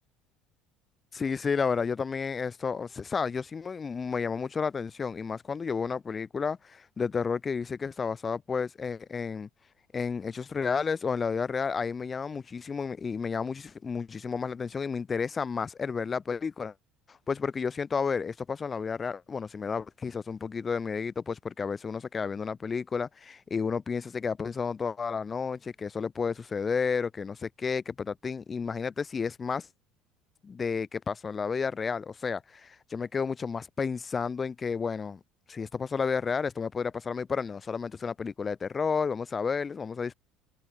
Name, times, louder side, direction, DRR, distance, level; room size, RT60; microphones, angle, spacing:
voice 1, 1.1-9.5 9.9-16.7 17.1-29.7 30.4-35.2 35.5-40.1, left 5 dB, 30° left, 6.9 m, -31 dB
figure-of-eight pair, 65°, 0 cm